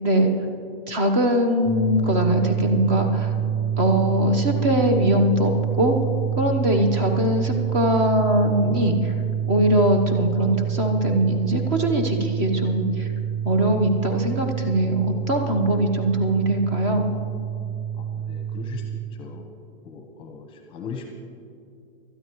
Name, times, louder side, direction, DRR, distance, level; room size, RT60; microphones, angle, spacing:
voice 1, 0.9-3.3 3.8-6.0 6.4-9.1 9.5-13.1 13.4-17.1, equal, 30° right, 4 dB, 1.1 m, -21 dB
sound 1, 1.6-19.0, right 9 dB, 10° right, 1.9 m, -27 dB
voice 2, 18.0-18.8 19.2-19.5 19.8-21.1, left 6 dB, 15° left, 3 dB, 0.9 m, -38 dB
19.0 x 12.5 x 3.1 m, 2.5 s
hypercardioid pair, 160°, 30 cm